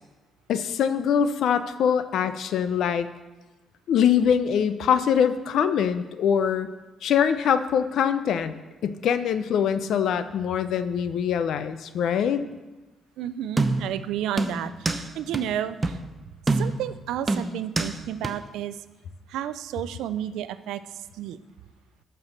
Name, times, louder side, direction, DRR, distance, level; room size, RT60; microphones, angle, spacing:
voice 1, 0.5-3.1 3.9-6.7 7.0-8.5 8.8-12.4, left 8 dB, 75° left, 11 dB, 0.6 m, -23 dB
voice 2, 13.2-16.0 16.5-18.8 19.3-20.8 21.1-21.4, right 11 dB, 90° right, 13 dB, 0.4 m, -31 dB
sound 1, 13.6-14.0 14.4-15.1 15.3-15.4 15.8-16.0 16.5-16.9 17.3-18.0 18.2-18.3, right 3 dB, 25° right, 0.7 m, -25 dB
13.0 x 4.7 x 6.5 m, 1.2 s
cardioid pair, 90°, 0 cm